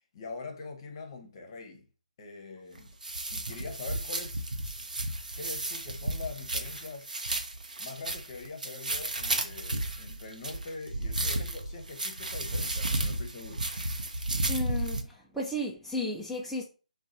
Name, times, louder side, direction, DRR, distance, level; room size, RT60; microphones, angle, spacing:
voice 1, 0.1-1.9 2.2-2.9 3.3-4.5 5.4-7.2 7.8-13.6, left 3 dB, 35° left, 0.8 m, -43 dB
sound 1, 2.8-15.0, right 2 dB, 80° right, 0.6 m, -33 dB
voice 2, 14.5-16.6, left 1 dB, ahead, 0.3 m, -34 dB
2.9 x 2.3 x 3.8 m
figure-of-eight pair, 150°, 4 cm